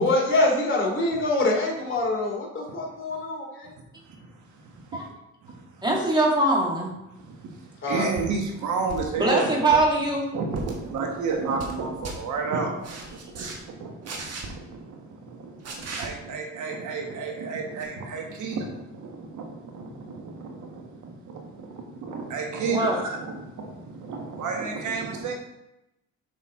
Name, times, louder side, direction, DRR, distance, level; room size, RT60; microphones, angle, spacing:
voice 1, 0.0-3.8 7.8-8.1, left 2 dB, 40° left, -3 dB, 2.7 m, -25 dB
voice 2, 4.6-5.0 5.5-5.6 7.2-7.6 7.9-9.8 10.3-25.3, right 4 dB, 75° right, 2 dB, 1.4 m, -32 dB
voice 3, 5.8-6.9 9.2-10.3 22.7-23.0, right 2 dB, 15° right, -2 dB, 2.0 m, -22 dB
sound 1, 8.2-8.4 8.9-9.2 9.6-9.9 10.5-10.8 11.3-11.8 12.0-12.2 12.8-13.6 14.0-14.5 15.6-16.1 17.8-17.9, right 3 dB, 55° right, 1.5 m, -36 dB
6.5 x 5.9 x 3.7 m, 0.90 s
cardioid pair, 90°, 30 cm